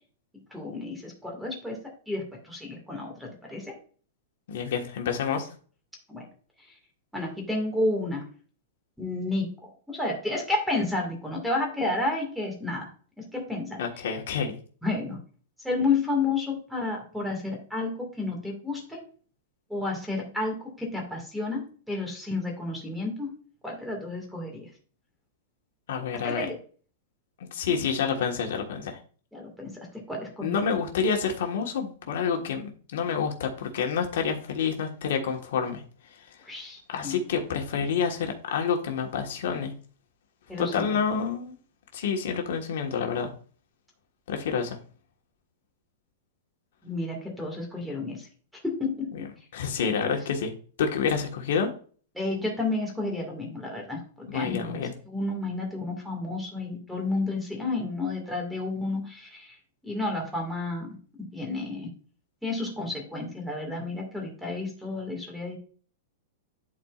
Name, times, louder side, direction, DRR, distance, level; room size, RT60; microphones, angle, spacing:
voice 1, 0.5-1.8 2.1-3.8 6.1-6.3 7.1-8.3 9.0-12.9 13.2-13.8 14.8-15.2 15.6-19.0 19.7-23.3 23.6-24.7 26.1-26.6 29.3-30.6 36.4-37.2 40.5-41.0 46.8-48.3 48.5-49.1 52.1-59.6 59.8-60.9 61.2-61.9 62.4-65.6, left 2 dB, ahead, 0 dB, 2.0 m, -31 dB
voice 2, 4.5-5.5 13.8-14.5 25.9-26.4 27.5-29.0 30.4-35.8 36.9-39.7 40.6-41.5 41.9-43.3 44.3-44.8 49.5-50.5 50.8-51.7 54.3-54.9, left 6 dB, 70° left, 3 dB, 1.4 m, -28 dB
11.5 x 4.3 x 2.4 m, 0.42 s
supercardioid pair, 150°, 0 cm